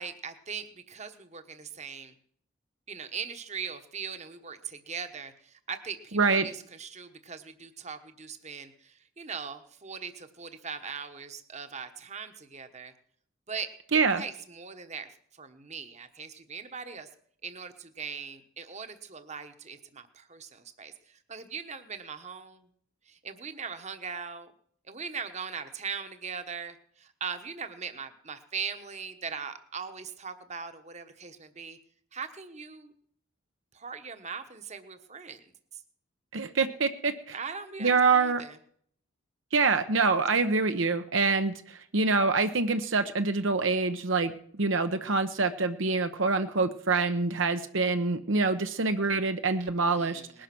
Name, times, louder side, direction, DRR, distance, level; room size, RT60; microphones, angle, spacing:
voice 1, 0.0-2.1 2.9-12.9 13.5-15.1 15.4-17.1 17.4-22.7 23.1-24.5 24.8-31.8 32.1-32.9 33.7-35.8 37.3-38.6 49.8-50.4, right 6 dB, 35° right, 8 dB, 1.2 m, -40 dB
voice 2, 6.1-6.5 13.9-14.2 36.3-37.3 37.8-38.4 39.5-44.3 44.6-50.4, right 4 dB, 70° right, 8 dB, 0.9 m, -26 dB
20.0 x 11.5 x 6.0 m, 0.62 s
head